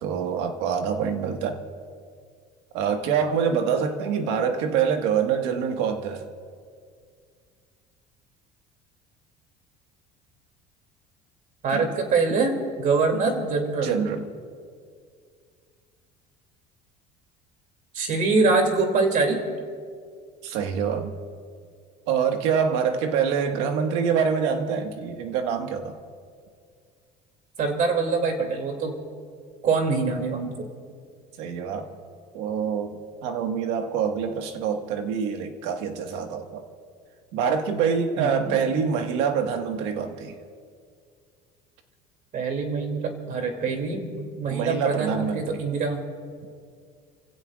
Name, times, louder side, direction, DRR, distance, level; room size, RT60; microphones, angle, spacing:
voice 1, 0.0-1.6 2.7-6.2 11.7-11.9 13.1-13.2 13.8-14.3 20.4-21.1 22.1-26.0 31.4-31.9 32.3-36.6 37.3-40.3 44.5-45.6, right 7 dB, 85° right, 5 dB, 1.6 m, -25 dB
voice 2, 11.6-14.0 17.9-19.4 27.6-28.9 29.6-30.5 38.2-38.5 42.3-46.0, right 4 dB, 45° right, 4 dB, 2.7 m, -24 dB
30.0 x 16.5 x 2.4 m, 2.1 s
cardioid pair, 140°, 18 cm